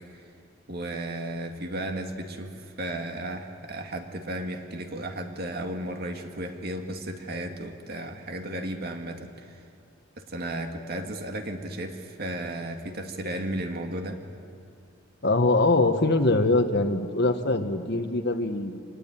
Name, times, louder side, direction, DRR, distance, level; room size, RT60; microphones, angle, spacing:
voice 1, 0.7-9.6 10.2-14.2, right 1 dB, 55° right, 4 dB, 2.0 m, -34 dB
voice 2, 15.2-18.8, left 2 dB, 60° left, 8 dB, 1.5 m, -23 dB
25.0 x 19.5 x 9.0 m, 2.6 s
head